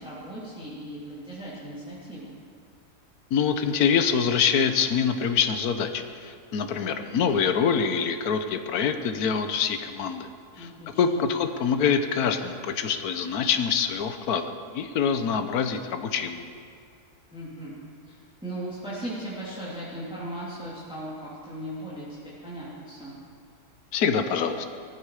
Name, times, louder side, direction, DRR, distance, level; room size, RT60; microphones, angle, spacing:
voice 1, 0.0-2.3 10.6-11.2 17.3-23.1, right 1 dB, 5° right, -9 dB, 3.2 m, -38 dB
voice 2, 3.3-10.3 10.6-10.7 11.0-16.5 23.9-24.7, left 6 dB, 70° left, 8 dB, 1.4 m, -25 dB
19.0 x 14.0 x 4.9 m, 2.3 s
omnidirectional pair, 1.7 m